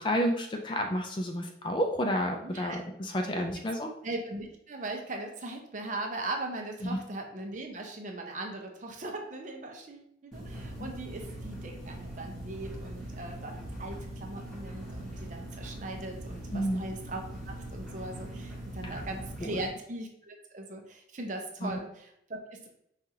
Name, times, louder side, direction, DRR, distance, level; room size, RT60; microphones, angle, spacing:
voice 1, 0.0-3.9 6.8-7.0 10.8-10.9 16.5-16.9 18.8-19.0 19.4-19.6 21.6-21.8, equal, 25° left, 3 dB, 0.4 m, -30 dB
voice 2, 2.4-2.8 4.0-22.7, right 2 dB, 40° right, 3 dB, 0.6 m, -39 dB
sound 1, 10.3-19.7, right 1 dB, ahead, 0.9 m, -41 dB
5.5 x 2.4 x 2.7 m, 0.74 s
head